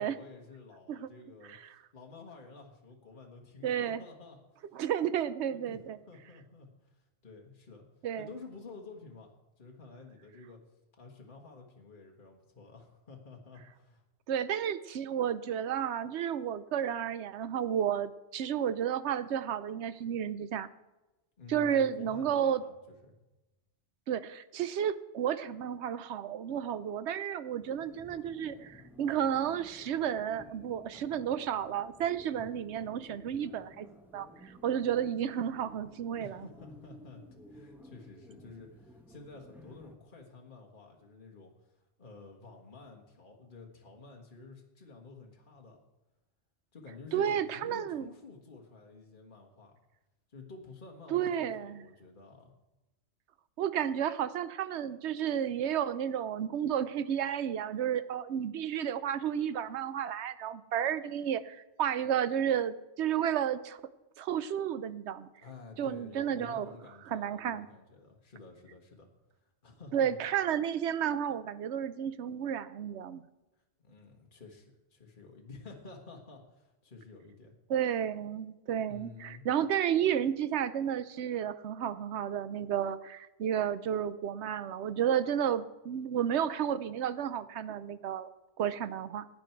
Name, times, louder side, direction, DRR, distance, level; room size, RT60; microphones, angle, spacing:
voice 1, 0.0-4.4 5.5-5.8 6.1-7.9 8.2-9.3 9.6-10.6 11.0-14.0 21.4-23.1 36.2-37.2 37.5-45.8 46.7-49.7 50.3-52.5 65.4-69.1 69.4-70.2 73.8-77.5 78.9-79.4, left 3 dB, 45° left, 1 dB, 1.8 m, -51 dB
voice 2, 3.6-4.0 4.7-6.0 8.0-8.3 14.3-20.7 21.5-22.6 24.1-33.9 34.1-36.4 47.1-48.1 51.1-51.8 53.6-63.8 64.2-65.3 65.8-66.7 67.1-67.7 69.9-73.2 77.7-88.3 88.6-89.3, right 9 dB, 75° right, 14 dB, 1.0 m, -32 dB
sound 1, 27.6-39.9, left 1 dB, ahead, 1.1 m, -54 dB
16.5 x 9.7 x 4.6 m, 1.0 s
omnidirectional pair, 1.2 m